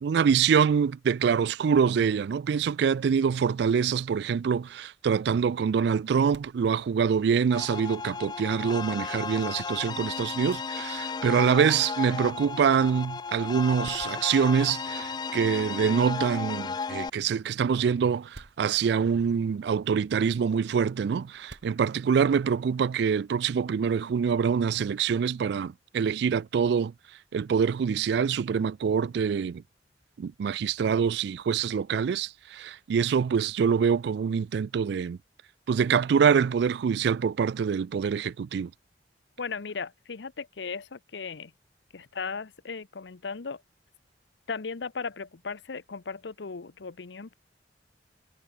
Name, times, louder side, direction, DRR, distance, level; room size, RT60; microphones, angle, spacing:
voice 1, 0.0-26.9 27.3-29.6 30.2-35.2 35.7-38.7, right 6 dB, 65° right, 0.3 m, -25 dB
sound 1, 4.8-22.8, right 1 dB, 85° right, 7.0 m, -58 dB
sound 2, 7.5-17.1, left 5 dB, 25° left, 0.3 m, -34 dB
voice 2, 39.4-41.5 41.9-43.6 44.5-47.3, left 5 dB, 75° left, 0.8 m, -36 dB
head